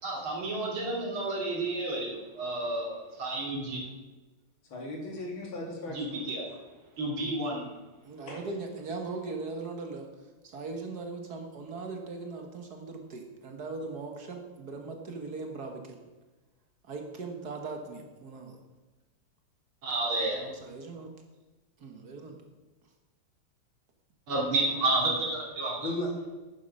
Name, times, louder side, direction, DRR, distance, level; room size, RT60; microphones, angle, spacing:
voice 1, 0.0-3.8 5.9-6.5 7.0-7.6 19.8-20.4 24.3-25.9, right 2 dB, 75° right, -2 dB, 3.4 m, -31 dB
voice 2, 4.7-6.2 8.3-8.4 25.8-26.3, left 1 dB, 70° left, 0 dB, 3.1 m, -36 dB
voice 3, 8.0-10.1 10.4-16.0 16.8-18.6 20.3-21.1 21.8-22.4, right 3 dB, 50° right, 3 dB, 1.7 m, -39 dB
10.5 x 9.6 x 5.4 m, 1.2 s
omnidirectional pair, 2.3 m